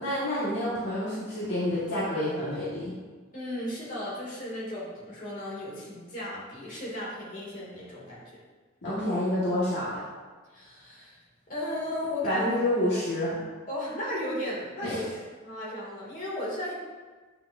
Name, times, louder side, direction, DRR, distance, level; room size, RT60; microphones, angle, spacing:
voice 1, 0.0-2.9 8.8-10.1 12.2-13.4 14.8-15.0, left 1 dB, 60° left, -9 dB, 1.7 m, -28 dB
voice 2, 3.3-8.2 10.5-11.2 11.5-12.5 12.8-13.0 13.7-15.1 15.4-16.7, left 1 dB, 40° left, -6 dB, 2.4 m, -35 dB
8.9 x 6.4 x 2.7 m, 1.3 s
head